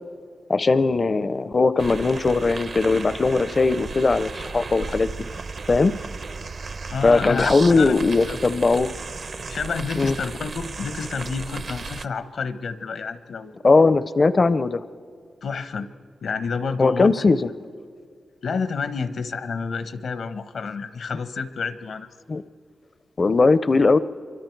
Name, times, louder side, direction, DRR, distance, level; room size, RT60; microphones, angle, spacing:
voice 1, 0.5-5.1 5.7-6.0 7.0-8.9 10.0-10.2 13.6-14.8 16.8-17.5 22.3-22.4 23.2-24.0, left 3 dB, 40° left, 14 dB, 0.5 m, -19 dB
sound 1, 1.8-12.1, right 4 dB, 60° right, 0.7 m, -34 dB
voice 2, 6.9-7.9 8.3-8.4 9.5-13.6 15.4-15.9 16.2-17.3 18.4-22.1, left 5 dB, 75° left, 12 dB, 0.9 m, -29 dB
26.5 x 24.5 x 4.6 m, 2.1 s
cardioid pair, 85°, 0 cm